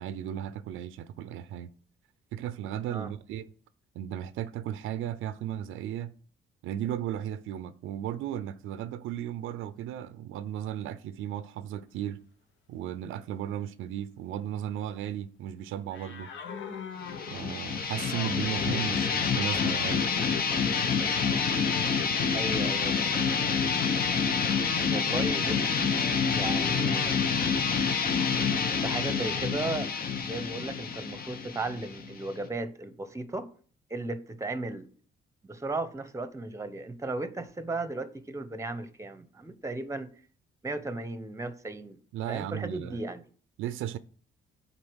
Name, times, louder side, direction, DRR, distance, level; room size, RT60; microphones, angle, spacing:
voice 1, 0.0-1.7 2.3-3.5 3.9-6.1 6.6-12.2 12.7-16.3 17.3-20.1 42.1-43.0 43.6-44.0, right 11 dB, 90° right, 0.5 m, -35 dB
sound 1, 15.9-22.0 22.5-23.6 23.9-24.6, left 6 dB, 70° left, 1.1 m, -43 dB
sound 2, 17.0-32.4, left 5 dB, 50° left, 1.0 m, -28 dB
voice 2, 22.3-23.3 24.9-25.8 26.3-27.3 28.8-29.9 30.3-33.5 33.9-34.9 35.4-40.1 40.6-42.0 42.3-43.2, right 2 dB, 15° right, 0.9 m, -35 dB
8.9 x 4.2 x 6.2 m
cardioid pair, 90°, 20 cm